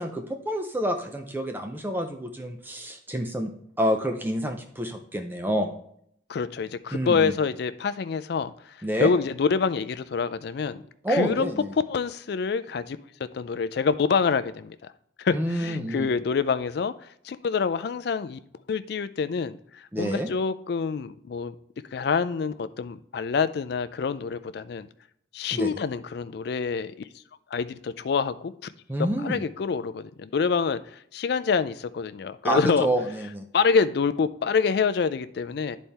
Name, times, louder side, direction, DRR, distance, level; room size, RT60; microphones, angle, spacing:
voice 1, 0.0-3.5 3.8-5.7 6.9-7.3 8.8-9.1 11.0-11.7 15.3-16.1 19.9-20.3 25.5-25.8 28.9-29.4 32.4-33.4, equal, 10° right, 5 dB, 0.5 m, -28 dB
voice 2, 6.3-10.8 11.1-11.5 11.9-14.8 15.2-16.9 17.2-18.4 18.7-21.5 21.9-24.9 25.3-26.9 27.5-28.5 29.2-32.9 33.5-35.8, left 5 dB, 55° left, 13 dB, 0.3 m, -26 dB
10.5 x 4.2 x 3.4 m, 0.70 s
head